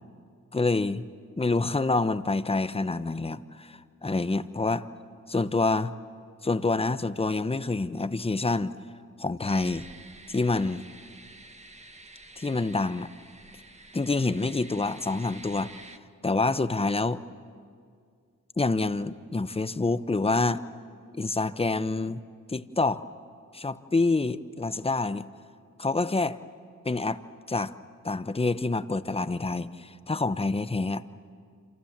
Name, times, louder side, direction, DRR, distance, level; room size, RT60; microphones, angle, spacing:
voice 1, 0.5-1.1 1.4-4.9 5.3-5.9 6.4-8.8 9.2-9.9 10.3-10.8 12.4-13.1 13.9-15.7 16.2-17.2 18.6-20.6 21.1-22.2 22.5-23.0 23.5-25.3 25.8-26.4 26.8-27.2 27.5-27.7 28.0-31.0, left 3 dB, 15° left, 13 dB, 0.8 m, -27 dB
sound 1, 9.5-16.0, right 2 dB, 20° right, 1.4 m, -49 dB
27.5 x 27.0 x 7.4 m, 2.2 s
cardioid pair, 80°, 34 cm